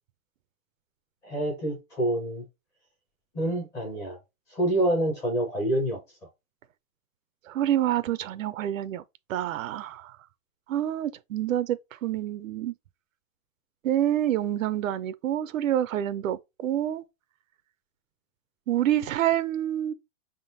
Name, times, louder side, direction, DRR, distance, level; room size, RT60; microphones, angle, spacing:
voice 1, 1.2-2.4 3.3-4.2 4.5-6.0, right 1 dB, 5° left, 0.4 m, -27 dB
voice 2, 7.5-9.0 9.3-10.2 10.7-12.7 13.8-17.0 18.7-19.9, right 11 dB, 75° right, 0.6 m, -27 dB
5.5 x 3.7 x 2.6 m
hypercardioid pair, 165°, 40 cm